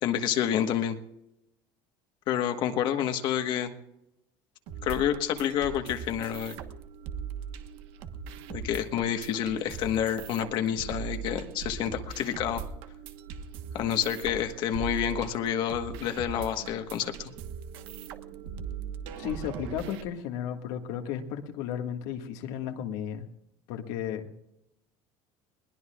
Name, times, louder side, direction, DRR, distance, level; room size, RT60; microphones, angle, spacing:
voice 1, 0.0-1.0 2.3-3.7 4.8-6.6 8.5-12.6 13.7-17.3, left 10 dB, 55° left, 6 dB, 1.4 m, -29 dB
sound 1, 4.7-20.0, right 7 dB, 65° right, 1.3 m, -40 dB
voice 2, 19.2-23.3 23.7-24.3, left 9 dB, 80° left, 4 dB, 1.8 m, -34 dB
21.0 x 20.0 x 2.4 m, 0.87 s
cardioid pair, 145°, 10 cm